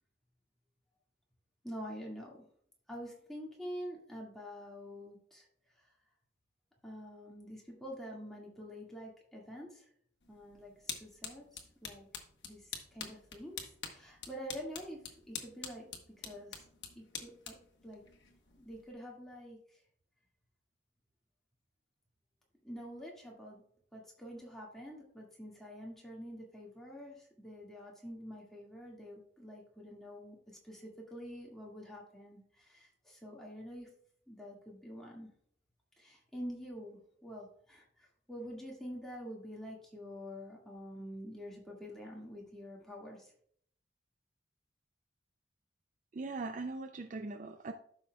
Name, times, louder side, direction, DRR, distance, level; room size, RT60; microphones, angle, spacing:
voice 1, 1.6-2.5 2.9-5.5 5.8-5.9 6.8-9.9 10.3-12.1 12.4-15.9 16.2-16.6 17.0-17.6 17.8-18.0 18.6-19.8 22.6-23.6 23.9-30.4 30.6-33.9 34.3-35.3 36.0-43.3, equal, ahead, -4 dB, 1.9 m, -47 dB
sound 1, 10.2-18.9, left 7 dB, 65° left, 1.2 m, -47 dB
voice 2, 46.1-47.7, right 3 dB, 40° right, 6 dB, 0.4 m, -40 dB
12.5 x 5.7 x 2.3 m, 0.63 s
head